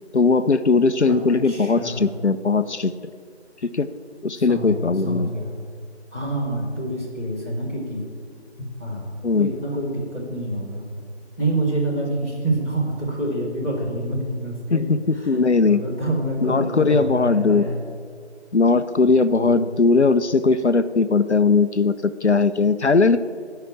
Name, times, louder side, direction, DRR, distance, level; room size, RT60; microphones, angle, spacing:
voice 1, 0.1-2.9 3.7-3.9 4.2-5.3 9.2-9.5 14.7-15.8 16.4-17.7 18.5-23.2, left 4 dB, 75° left, 12 dB, 0.7 m, -19 dB
voice 2, 1.4-2.1 4.3-5.6 6.1-8.1 8.6-10.9 11.4-14.9 15.1-17.8 19.3-19.6, right 1 dB, 10° right, -9 dB, 2.1 m, -27 dB
16.5 x 5.8 x 8.7 m, 2.1 s
figure-of-eight pair, 165°, 34 cm